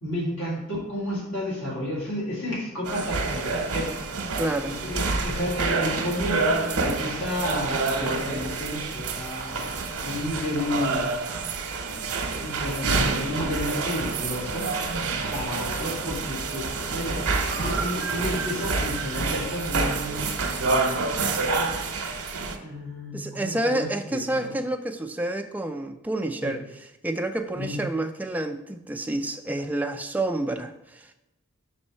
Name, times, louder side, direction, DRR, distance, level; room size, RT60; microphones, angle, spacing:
voice 1, 0.0-4.2 4.7-6.5 6.7-11.0 12.4-14.7 15.3-17.2 17.6-20.3 22.6-24.5 26.4-26.6 27.5-27.7, left 1 dB, 65° left, -7 dB, 2.4 m, -31 dB
sound 1, 2.9-22.6, right 3 dB, 90° right, 0.9 m, -28 dB
voice 2, 4.4-4.7 23.1-26.6 27.0-31.1, right 1 dB, 5° right, 6 dB, 0.3 m, -29 dB
5.3 x 4.3 x 5.5 m, 0.95 s
head